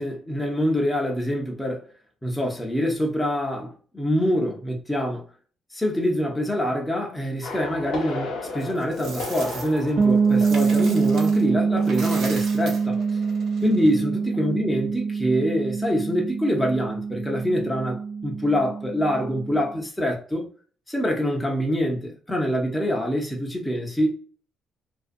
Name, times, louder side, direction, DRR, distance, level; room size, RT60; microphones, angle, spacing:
voice 1, 0.0-1.8 2.2-5.2 5.7-13.0 13.6-20.5 20.9-24.1, equal, 10° left, 0.6 m, -25 dB
sound 1, 7.4-13.9 14.1-14.5, left 2 dB, 90° left, 0.8 m, -36 dB
Coin (dropping), 8.6-11.4 11.8-14.0, right 4 dB, 70° right, 0.7 m, -39 dB
sound 2, 10.0-19.7, right 5 dB, 50° right, 0.4 m, -24 dB
2.5 x 2.4 x 2.5 m
cardioid pair, 90°, 0 cm